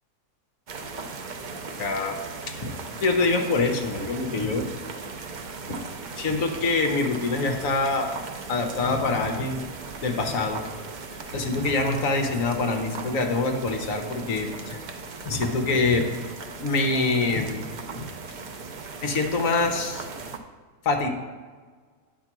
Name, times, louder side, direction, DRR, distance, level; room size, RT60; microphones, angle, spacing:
sound 1, 0.7-20.4, right 4 dB, 70° right, 0.4 m, -38 dB
voice 1, 1.8-2.2 2.5-2.7 3.0-4.7 5.7-5.8 6.2-8.1 8.5-9.6 10.0-10.6 11.3-14.8 15.2-16.1 16.6-18.1 19.0-20.1 20.8-21.1, left 3 dB, 60° left, 4 dB, 1.3 m, -25 dB
9.4 x 4.5 x 6.0 m, 1.5 s
omnidirectional pair, 1.7 m